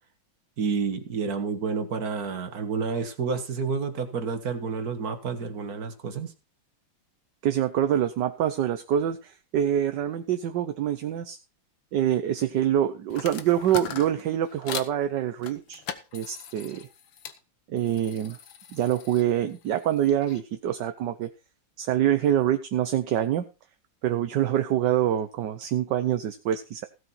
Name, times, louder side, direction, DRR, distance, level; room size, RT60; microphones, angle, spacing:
voice 1, 0.6-6.3, right 5 dB, 50° right, 8 dB, 2.1 m, -29 dB
voice 2, 7.4-11.4 11.9-15.8 16.1-16.9 17.7-18.4 18.7-21.3 21.8-23.4 24.0-26.8, right 11 dB, 70° right, 8 dB, 1.4 m, -25 dB
sound 1, 13.1-14.9 15.4-17.4 17.8-20.4, left 8 dB, 85° left, 1.9 m, -40 dB
16.0 x 8.0 x 4.3 m, 0.30 s
omnidirectional pair, 2.1 m